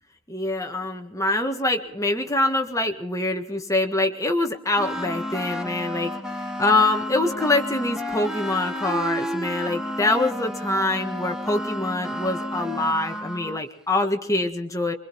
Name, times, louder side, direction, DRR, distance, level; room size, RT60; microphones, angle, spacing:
voice 1, 0.3-6.2 6.6-14.9, left 2 dB, 15° left, 4 dB, 1.7 m, -24 dB
sound 1, 4.8-13.6, equal, 5° right, 1.4 m, -31 dB
25.5 x 23.5 x 4.3 m, 0.65 s
head